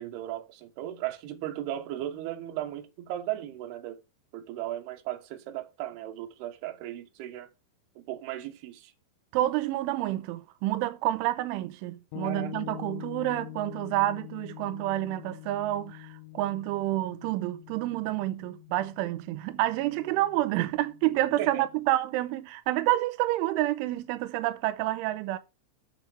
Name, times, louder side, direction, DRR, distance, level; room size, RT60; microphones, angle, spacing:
voice 1, 0.0-4.0 4.3-7.5 8.0-8.9 12.2-12.6 21.4-21.6, right 13 dB, 70° right, 2.8 m, -36 dB
voice 2, 9.3-25.4, right 16 dB, 90° right, 3.1 m, -29 dB
sound 1, 12.1-21.8, left 19 dB, 85° left, 3.0 m, -45 dB
7.3 x 7.2 x 4.9 m
omnidirectional pair, 5.4 m